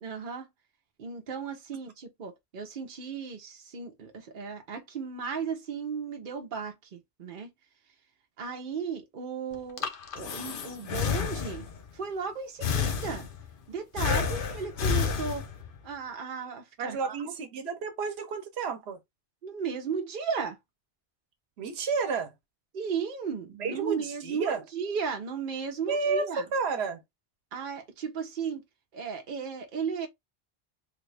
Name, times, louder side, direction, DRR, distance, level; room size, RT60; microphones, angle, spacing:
voice 1, 0.0-0.4 1.0-7.5 8.4-9.9 10.1-11.7 11.9-13.3 13.7-15.5 15.8-17.2 19.4-20.6 22.7-26.4 27.5-28.6 28.9-30.1, right 6 dB, 60° right, 0.9 m, -35 dB
Breathing, 9.5-11.8 12.6-13.5 14.0-15.8, left 6 dB, 60° left, 0.8 m, -30 dB
voice 2, 16.8-19.0 21.6-22.3 23.6-24.6 25.9-27.0, right 5 dB, 90° right, 1.0 m, -31 dB
3.4 x 2.4 x 3.2 m
omnidirectional pair, 1.0 m